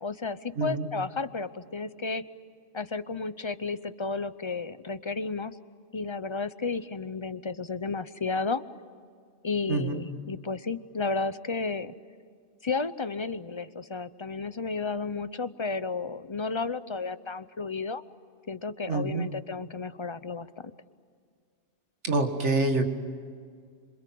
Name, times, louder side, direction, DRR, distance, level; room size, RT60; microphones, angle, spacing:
voice 1, 0.0-2.2 2.7-5.6 5.9-8.6 9.4-11.9 12.6-18.0 18.5-20.7, left 4 dB, 30° left, 14 dB, 0.6 m, -32 dB
voice 2, 0.6-0.9 9.7-10.0 18.9-19.3 22.0-22.8, right 3 dB, 85° right, 5 dB, 2.3 m, -26 dB
27.0 x 26.5 x 7.7 m, 2.1 s
omnidirectional pair, 1.2 m